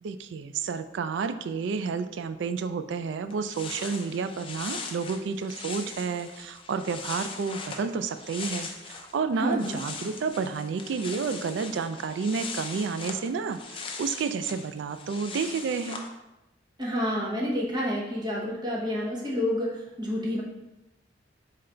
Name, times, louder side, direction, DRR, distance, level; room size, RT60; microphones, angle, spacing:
voice 1, 0.0-16.0, right 5 dB, 65° right, 10 dB, 0.3 m, -30 dB
sound 1, 3.0-3.1 3.3-9.1 9.4-16.1, left 4 dB, 30° left, 0.4 m, -40 dB
voice 2, 9.3-9.8 16.8-20.4, left 1 dB, 25° right, -4 dB, 1.0 m, -29 dB
3.9 x 3.2 x 4.3 m, 0.98 s
head